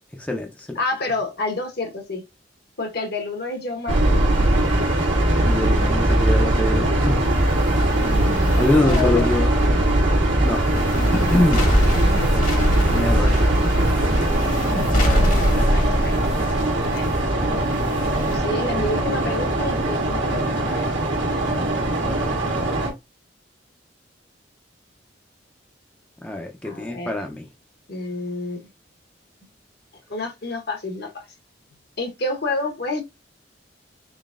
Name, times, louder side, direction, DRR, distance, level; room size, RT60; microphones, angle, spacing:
voice 1, 0.2-0.8 5.4-7.3 8.6-9.5 10.4-10.6 11.1-11.7 12.9-13.7 14.9-15.4 22.0-22.4 26.2-27.4, left 1 dB, 10° left, 0.5 m, -25 dB
voice 2, 0.7-2.3 2.8-4.2 8.3-9.7 15.0-16.1 16.9-17.1 18.3-20.9 26.6-27.1 27.9-28.6 30.1-31.1 32.0-33.0, left 2 dB, 60° left, 1.1 m, -29 dB
sound 1, 3.9-22.9, right 1 dB, 80° right, 1.3 m, -21 dB
sound 2, 7.1-18.4, equal, 45° left, 1.1 m, -24 dB
3.8 x 3.5 x 2.4 m
head